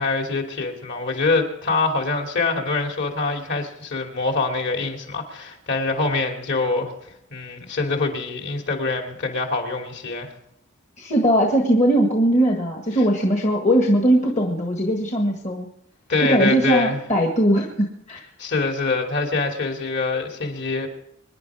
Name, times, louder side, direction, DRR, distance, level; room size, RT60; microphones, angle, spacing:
voice 1, 0.0-6.9 7.3-10.3 16.1-17.0 18.4-20.9, left 3 dB, 50° left, 2 dB, 2.9 m, -24 dB
voice 2, 11.0-15.7 16.2-18.2, right 1 dB, 30° left, 1 dB, 1.7 m, -20 dB
25.0 x 10.5 x 4.9 m, 0.76 s
head